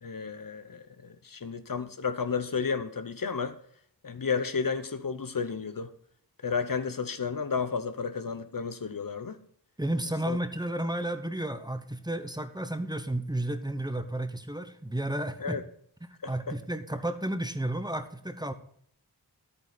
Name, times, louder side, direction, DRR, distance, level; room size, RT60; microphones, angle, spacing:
voice 1, 0.0-3.6 4.0-5.9 6.4-9.4 10.3-10.4 15.4-15.6 16.2-16.5, left 5 dB, 55° left, 0.9 m, -32 dB
voice 2, 9.8-15.6 16.0-18.5, right 1 dB, 10° right, 1.0 m, -32 dB
11.0 x 8.8 x 4.1 m
wide cardioid pair, 75°, 39 cm